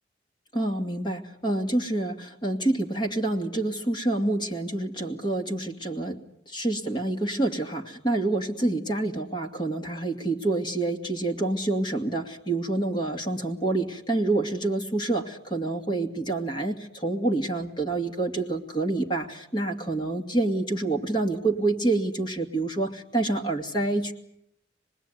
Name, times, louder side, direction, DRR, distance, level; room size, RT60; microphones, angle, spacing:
voice 1, 0.5-24.1, right 2 dB, 25° left, 3 dB, 2.5 m, -27 dB
26.5 x 20.5 x 9.5 m, 0.77 s
head